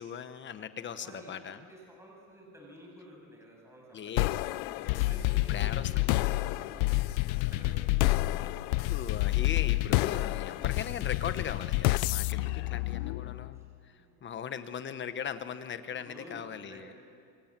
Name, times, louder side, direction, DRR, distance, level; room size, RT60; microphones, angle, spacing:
voice 1, 0.0-1.7 3.9-4.5 4.7-6.1 8.3-8.5 8.9-16.9, left 8 dB, 25° left, 11 dB, 1.1 m, -39 dB
voice 2, 1.0-4.0 4.3-4.5 4.9-9.0 10.5-10.7 12.4-12.5 13.5-14.1 16.1-16.8, equal, 5° right, -1 dB, 7.0 m, -52 dB
sound 1, 4.2-13.6, left 20 dB, 75° left, 0.6 m, -29 dB
27.0 x 24.0 x 7.5 m, 2.3 s
cardioid pair, 145°, 41 cm